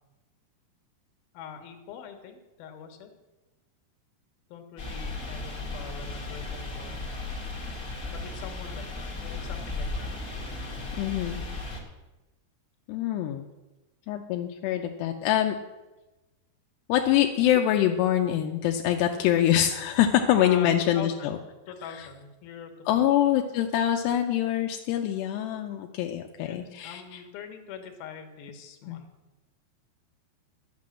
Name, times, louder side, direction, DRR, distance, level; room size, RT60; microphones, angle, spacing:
voice 1, 1.3-3.1 4.5-7.0 8.1-10.1 20.4-21.4 21.7-23.1 26.3-29.1, left 7 dB, 65° left, 6 dB, 3.0 m, -43 dB
sound 1, 4.8-11.8, left 3 dB, 30° left, 1.4 m, -35 dB
voice 2, 11.0-11.4 12.9-13.5 14.1-15.6 16.9-21.4 21.8-22.1 22.9-27.2 28.9-29.0, left 11 dB, 85° left, 3 dB, 2.8 m, -25 dB
11.5 x 8.5 x 7.4 m, 1.1 s
omnidirectional pair, 4.9 m